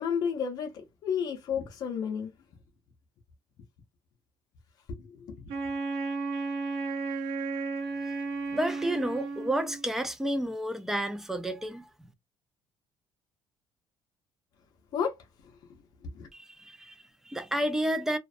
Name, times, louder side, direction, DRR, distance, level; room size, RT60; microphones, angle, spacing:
voice 1, 0.0-2.3 5.1-5.4 14.9-15.1 16.1-16.3, left 7 dB, 50° left, 0.6 m, -31 dB
Wind instrument woodwind instrument, 5.5-9.9, right 4 dB, 80° right, 0.8 m, -33 dB
voice 2, 8.5-11.9 16.3-18.2, right 1 dB, 5° right, 0.3 m, -31 dB
2.5 x 2.1 x 2.4 m
cardioid pair, 175°, 8 cm